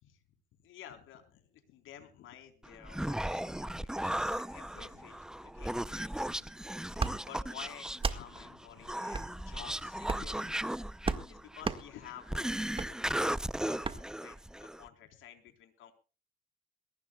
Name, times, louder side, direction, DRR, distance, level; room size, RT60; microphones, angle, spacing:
voice 1, 0.6-6.5 6.8-10.7 11.2-13.3 13.6-13.8 14.2-15.9, left 10 dB, 85° left, 6 dB, 4.0 m, -52 dB
Human voice, 2.6-14.9, right 1 dB, 5° right, 0.6 m, -36 dB
sound 1, 7.0-7.2 7.9-8.2 9.1-9.3 10.0-10.3 11.0-11.2 11.6-11.8 12.7-12.9 13.8-14.0, right 4 dB, 25° right, 1.8 m, -32 dB
22.0 x 18.5 x 2.3 m, 0.35 s
cardioid pair, 90°, 20 cm